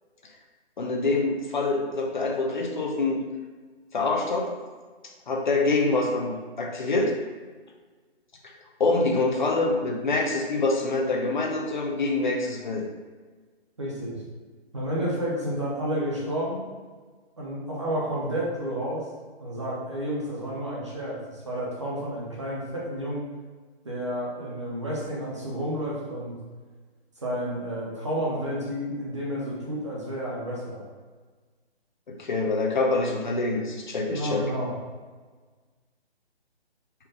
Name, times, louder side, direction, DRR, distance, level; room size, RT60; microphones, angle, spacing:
voice 1, 0.8-3.2 3.9-4.6 5.3-7.1 8.8-12.8 32.1-34.4, left 3 dB, 45° left, 1 dB, 0.7 m, -25 dB
voice 2, 13.8-14.2 14.7-16.7 17.4-19.1 19.4-23.2 23.8-26.4 27.2-30.8 34.1-34.7, equal, 30° right, -5 dB, 0.7 m, -30 dB
4.5 x 2.4 x 4.8 m, 1.4 s
hypercardioid pair, 170°, 32 cm